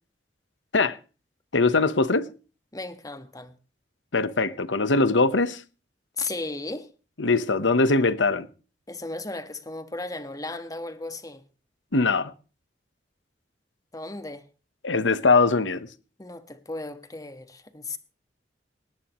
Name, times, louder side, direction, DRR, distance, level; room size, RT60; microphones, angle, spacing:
voice 1, 1.5-2.3 4.1-5.6 7.2-8.5 11.9-12.3 14.8-15.9, left 3 dB, 90° left, 1.1 m, -21 dB
voice 2, 2.7-3.5 6.2-6.9 8.9-11.4 13.9-14.4 16.2-18.0, left 2 dB, 20° left, 1.5 m, -35 dB
19.0 x 17.0 x 3.1 m
head